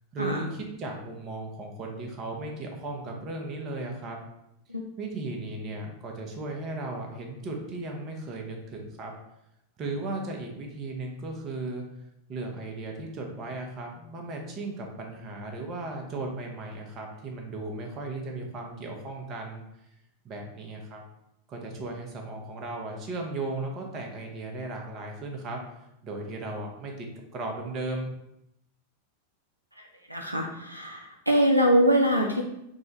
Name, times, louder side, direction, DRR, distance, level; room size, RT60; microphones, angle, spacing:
voice 1, 0.1-4.2 5.0-9.1 9.8-11.8 12.3-19.6 20.2-21.0 21.5-25.6 26.0-27.1 27.3-28.1, right 2 dB, 30° right, 2 dB, 0.7 m, -36 dB
voice 2, 29.8-32.4, equal, 85° right, 2 dB, 0.4 m, -24 dB
3.6 x 2.2 x 4.0 m, 0.84 s
figure-of-eight pair, 90°, 0 cm